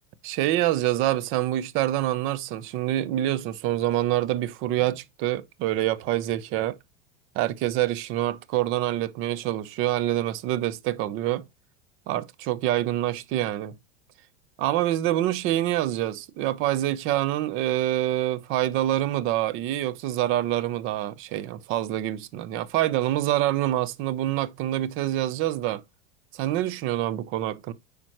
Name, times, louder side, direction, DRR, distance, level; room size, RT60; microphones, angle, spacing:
voice 1, 0.2-6.8 7.4-11.4 12.1-13.8 14.6-25.8 26.3-27.7, right 14 dB, 45° right, 0.7 m, -26 dB
9.0 x 5.1 x 3.0 m
supercardioid pair, 145°, 29 cm